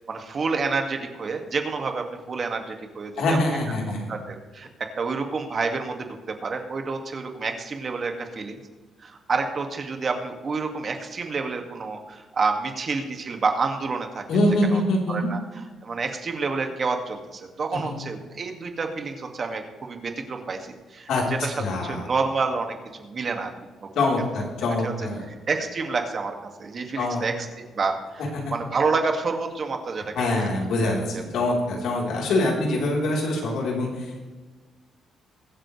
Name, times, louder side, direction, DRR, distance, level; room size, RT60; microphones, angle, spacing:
voice 1, 0.1-3.6 4.1-8.6 9.0-14.2 14.7-14.8 15.1-21.5 21.8-23.5 23.8-23.9 24.8-24.9 25.3-27.5 27.7-30.5, right 4 dB, 45° right, 4 dB, 2.1 m, -29 dB
voice 2, 3.2-4.1 14.3-15.3 17.7-17.9 21.1-21.2 21.6-22.0 24.0-25.2 27.0-27.2 30.1-34.3, left 2 dB, 75° left, -2 dB, 3.9 m, -24 dB
22.5 x 7.8 x 3.3 m, 1.3 s
cardioid pair, 90°, 0 cm